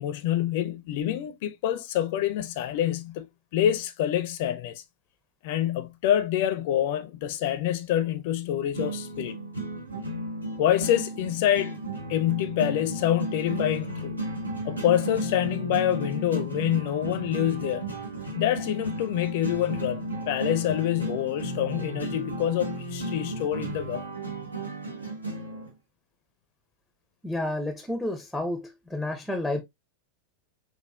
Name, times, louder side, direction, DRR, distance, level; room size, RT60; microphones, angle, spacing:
voice 1, 0.0-3.3 3.5-4.8 5.4-9.4 10.6-11.7 12.1-14.2 14.6-17.9 18.3-24.1, left 11 dB, 50° left, 0.5 m, -26 dB
sound 1, 8.7-25.7, right 1 dB, 85° right, 1.1 m, -34 dB
voice 2, 27.2-29.6, left 1 dB, ahead, 0.6 m, -30 dB
6.1 x 2.3 x 2.3 m
figure-of-eight pair, 90°, 0 cm